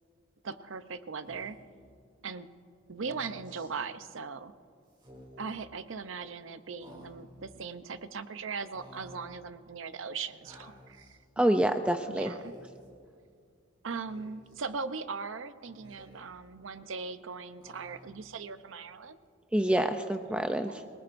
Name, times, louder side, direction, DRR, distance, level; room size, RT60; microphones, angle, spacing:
voice 1, 0.4-1.6 2.2-2.5 2.9-4.5 5.4-11.2 12.1-12.5 13.8-19.2 20.7-20.9, right 5 dB, 75° right, 12 dB, 0.7 m, -39 dB
Speech, 1.2-1.8 2.9-3.7 4.9-5.6 6.8-7.5 8.7-9.4 10.4-11.2 12.2-12.9 14.0-14.7 15.6-16.5 17.6-18.3, equal, 25° right, 2.9 m, -53 dB
voice 2, 11.4-12.3 19.5-20.8, right 1 dB, 5° right, 7 dB, 0.4 m, -27 dB
27.0 x 18.5 x 2.6 m, 2.3 s
head